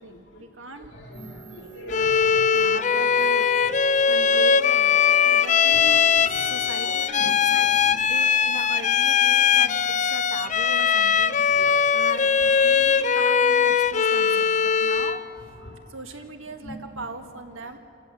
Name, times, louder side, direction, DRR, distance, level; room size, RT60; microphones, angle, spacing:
voice 1, 0.0-0.9 2.0-3.5 4.1-5.8 6.2-7.7 8.1-15.2 15.9-17.8, right 2 dB, 90° right, 5 dB, 1.8 m, -39 dB
voice 2, 0.9-2.4 5.7-6.0 6.2-6.5 6.8-8.3 9.6-9.7 11.5-11.7 12.1-12.4 15.2-15.3 15.6-15.8 16.6-16.7, equal, 60° left, 2 dB, 3.4 m, -41 dB
sound 1, 1.1-7.0, right 2 dB, 25° right, 6.6 m, -43 dB
Bowed string instrument, 1.9-15.3, left 7 dB, 35° left, 0.5 m, -20 dB
26.5 x 15.0 x 7.7 m, 2.7 s
head